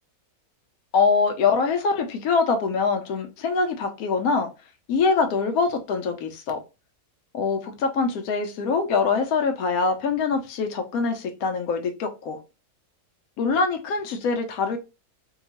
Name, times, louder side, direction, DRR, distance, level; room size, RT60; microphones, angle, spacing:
voice 1, 0.9-4.5 4.9-6.6 7.3-12.4 13.4-14.8, left 4 dB, 75° left, 1.0 m, -24 dB
2.8 x 2.3 x 2.8 m
omnidirectional pair, 1.7 m